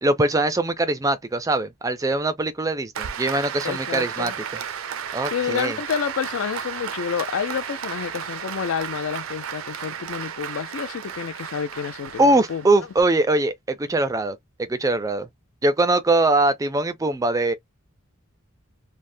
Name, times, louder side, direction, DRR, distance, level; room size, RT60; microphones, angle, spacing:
voice 1, 0.0-4.3 5.1-5.8 12.2-14.4 14.7-15.3 15.6-17.5, right 2 dB, 15° right, 0.3 m, -22 dB
Applause, 2.9-13.0, right 8 dB, 75° right, 0.5 m, -33 dB
voice 2, 3.6-4.3 5.3-12.6, left 7 dB, 75° left, 0.4 m, -29 dB
3.3 x 2.0 x 2.5 m
head